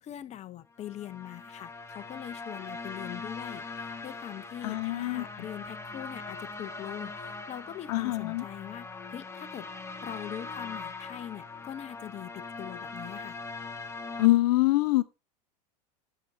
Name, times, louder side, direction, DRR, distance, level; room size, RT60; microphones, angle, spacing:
voice 1, 0.0-9.7 10.0-13.4, left 11 dB, 35° left, 0.8 m, -42 dB
sound 1, 0.8-14.3, left 3 dB, 15° left, 1.1 m, -41 dB
voice 2, 4.6-5.3 7.9-8.4 14.2-15.0, left 18 dB, 65° left, 0.6 m, -24 dB
16.5 x 6.0 x 2.7 m
hypercardioid pair, 90°, 21 cm